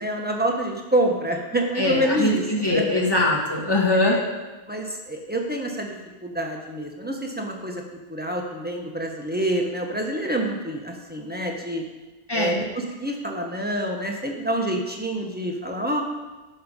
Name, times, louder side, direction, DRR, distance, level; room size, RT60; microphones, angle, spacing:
voice 1, 0.0-2.8 3.9-4.2 4.7-6.0 6.2-7.8 8.1-11.8 12.3-16.0, right 1 dB, 10° right, 1 dB, 1.1 m, -27 dB
voice 2, 1.8-4.2 12.3-12.6, left 2 dB, 25° left, -3 dB, 1.7 m, -22 dB
12.0 x 5.6 x 5.4 m, 1.2 s
omnidirectional pair, 1.0 m